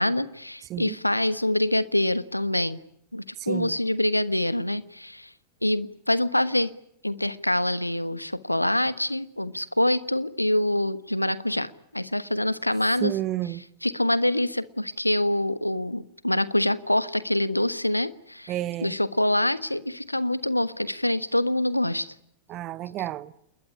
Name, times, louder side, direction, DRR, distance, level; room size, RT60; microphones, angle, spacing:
voice 1, 0.0-2.8 3.1-5.3 5.6-6.7 7.0-13.1 13.8-18.5 18.8-22.1, left 1 dB, 85° left, 1.1 m, -25 dB
voice 2, 3.4-3.8 13.0-13.6 18.5-18.9 22.5-23.3, right 14 dB, 35° right, 1.2 m, -30 dB
28.5 x 21.0 x 9.9 m
figure-of-eight pair, 90°, 0 cm